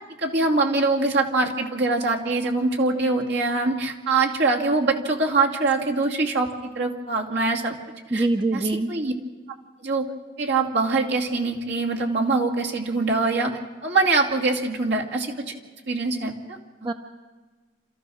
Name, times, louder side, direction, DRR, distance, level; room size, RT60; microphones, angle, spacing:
voice 1, 0.2-7.7 8.1-8.3 8.5-9.1 9.8-10.1 10.4-15.5 15.9-16.9, right 3 dB, 65° right, 0 dB, 2.5 m, -23 dB
voice 2, 8.1-8.9 16.8-16.9, right 2 dB, 25° right, 7 dB, 0.7 m, -23 dB
28.5 x 14.0 x 6.4 m, 1.4 s
head